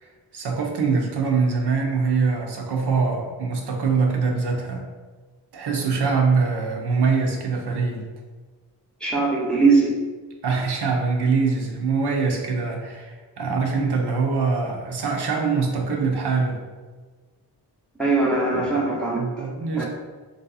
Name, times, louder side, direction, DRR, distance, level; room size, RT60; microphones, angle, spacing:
voice 1, 0.0-4.8 5.5-8.0 10.4-16.6 18.5-18.9 19.2-19.8, right 4 dB, 65° right, 0 dB, 0.7 m, -23 dB
voice 2, 9.0-9.9 18.0-19.5 19.8-19.9, right 3 dB, ahead, -4 dB, 0.8 m, -21 dB
3.1 x 2.6 x 4.0 m, 1.4 s
cardioid pair, 85°, 43 cm